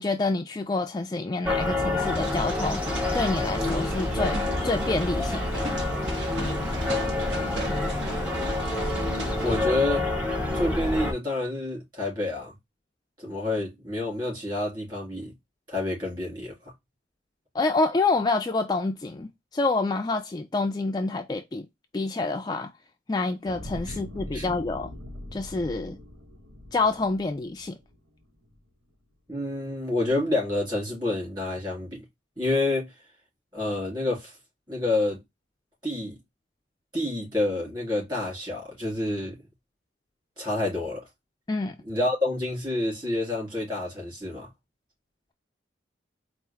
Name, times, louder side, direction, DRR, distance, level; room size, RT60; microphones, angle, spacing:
voice 1, 0.0-5.7 17.5-21.7 21.9-22.7 23.1-24.9 25.3-26.0 26.7-27.8 41.5-41.8, left 3 dB, 20° left, 0.3 m, -27 dB
sound 1, 1.4-11.1, left 2 dB, 5° right, 0.9 m, -28 dB
sound 2, 2.0-9.6, right 2 dB, 70° right, 1.4 m, -37 dB
voice 2, 9.4-10.1 10.5-12.5 13.2-15.3 15.7-16.5 23.9-24.0 24.3-24.5 29.3-32.1 32.4-32.9 33.5-34.4 34.7-35.2 35.8-36.2 36.9-39.4 40.4-41.0 41.8-44.5, left 2 dB, 25° right, 2.9 m, -28 dB
sound 3, 23.4-28.0 28.4-28.6, left 1 dB, 90° right, 1.4 m, -41 dB
4.4 x 2.5 x 3.4 m
head